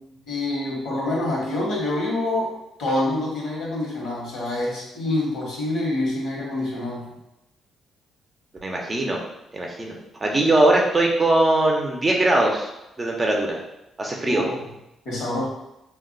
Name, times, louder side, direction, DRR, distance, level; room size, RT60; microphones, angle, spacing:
voice 1, 0.3-7.2 14.2-14.6 15.0-15.5, left 1 dB, 75° left, -3 dB, 1.2 m, -26 dB
voice 2, 8.6-9.2 9.5-9.9 10.2-12.7 13.0-13.6 14.0-14.4, right 2 dB, 25° right, 0 dB, 0.6 m, -20 dB
2.4 x 2.2 x 3.8 m, 0.89 s
cardioid pair, 90°, 0 cm